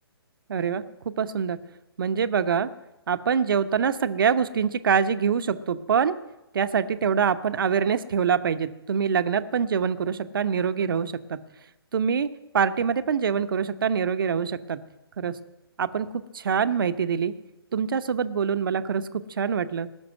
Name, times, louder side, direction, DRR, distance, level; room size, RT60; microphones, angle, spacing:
voice 1, 0.5-1.6 2.0-2.7 3.1-6.1 6.5-11.4 11.9-14.8 15.2-15.4 15.8-17.3 17.7-19.9, right 7 dB, 60° right, 12 dB, 0.9 m, -25 dB
19.0 x 6.9 x 9.4 m, 0.99 s
figure-of-eight pair, 130°, 13 cm